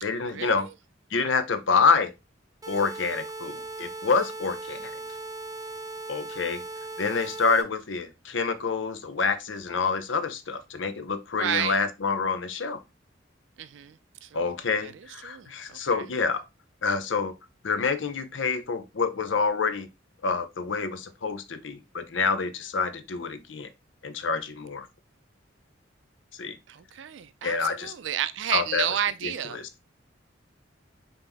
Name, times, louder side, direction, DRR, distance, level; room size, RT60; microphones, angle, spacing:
voice 1, 0.0-0.7 1.1-2.1 2.7-4.9 6.1-6.6 7.0-12.8 14.3-16.4 16.8-17.3 17.6-19.9 20.2-23.7 24.0-24.9 26.3-26.6 27.4-27.9 28.5-28.9 29.2-29.7, left 5 dB, 75° left, 0.6 m, -27 dB
sound 1, 2.6-7.6, right 2 dB, 20° right, 0.7 m, -38 dB
voice 2, 11.3-11.8 13.6-14.0 14.2-14.5 14.8-14.9 15.2-16.0 26.7-29.6, right 10 dB, 70° right, 0.4 m, -31 dB
5.2 x 2.8 x 3.4 m
head